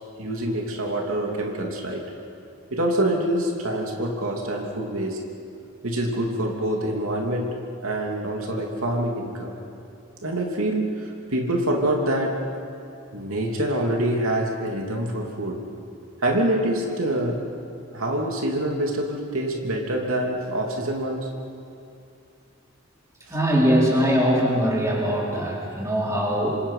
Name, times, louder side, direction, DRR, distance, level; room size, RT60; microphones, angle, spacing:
voice 1, 0.2-2.1 2.7-5.2 5.8-9.5 10.2-12.4 13.1-15.6 16.2-17.4 17.9-21.3, right 1 dB, 75° right, 0 dB, 3.0 m, -26 dB
voice 2, 23.3-26.6, equal, 15° right, -4 dB, 4.4 m, -21 dB
27.0 x 26.5 x 5.8 m, 2.6 s
head